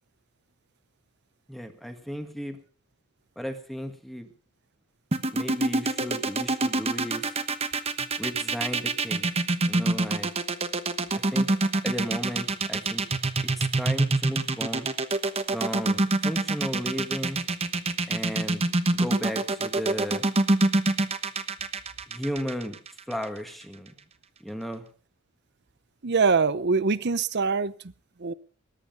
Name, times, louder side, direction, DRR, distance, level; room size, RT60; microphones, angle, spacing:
voice 1, 1.5-2.6 3.4-4.3 5.3-7.3 8.2-9.3 9.6-10.3 11.1-11.6 11.8-13.1 13.6-14.9 15.5-17.4 18.1-20.3 22.1-22.8 23.1-23.9 24.4-24.9, equal, ahead, 1.8 m, -34 dB
sound 1, 5.1-23.2, right 2 dB, 30° right, 1.1 m, -25 dB
voice 2, 26.0-27.9 28.2-28.3, right 4 dB, 55° right, 0.7 m, -24 dB
20.5 x 9.9 x 5.3 m
head